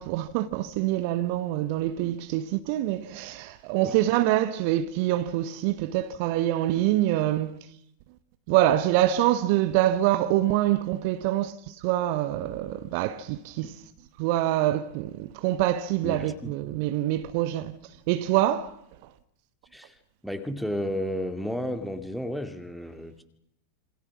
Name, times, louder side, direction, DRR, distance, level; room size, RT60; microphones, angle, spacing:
voice 1, 0.0-7.6 8.5-13.8 14.2-17.7 18.1-18.8, right 14 dB, 45° right, 1.2 m, -25 dB
voice 2, 16.0-16.6 19.7-20.0 20.2-23.2, equal, ahead, 2.3 m, -32 dB
27.0 x 25.5 x 6.1 m
figure-of-eight pair, 90°, 0 cm